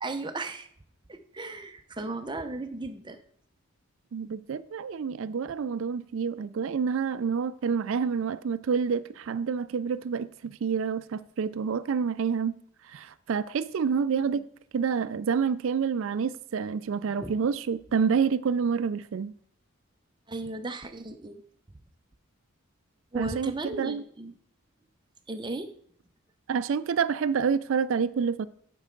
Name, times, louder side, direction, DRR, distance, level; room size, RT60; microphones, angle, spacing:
voice 1, 0.0-0.7 1.1-3.2 17.2-17.3 20.3-21.4 23.1-24.3 25.3-25.7, right 2 dB, 20° right, 0.6 m, -35 dB
voice 2, 4.1-12.5 12.8-14.4 14.7-19.3 23.1-24.0 26.5-28.5, right 6 dB, 60° right, 0.4 m, -28 dB
10.5 x 5.4 x 3.9 m
head